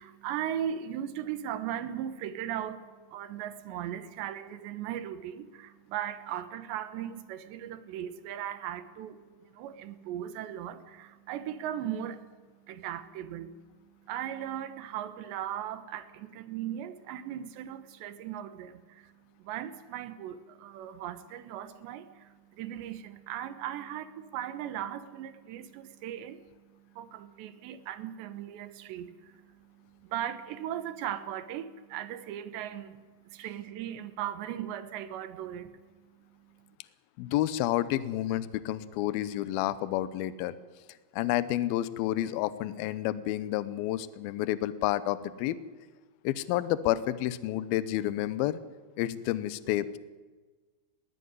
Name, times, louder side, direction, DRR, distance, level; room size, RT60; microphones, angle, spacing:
voice 1, 0.0-12.3 12.7-13.6 14.1-19.1 19.4-26.4 26.7-35.8, right 10 dB, 75° right, 12 dB, 3.3 m, -38 dB
voice 2, 37.2-40.5 41.1-45.6 46.2-48.6 49.0-50.0, left 14 dB, 75° left, 16 dB, 2.3 m, -30 dB
20.0 x 19.0 x 9.7 m, 1.4 s
omnidirectional pair, 5.2 m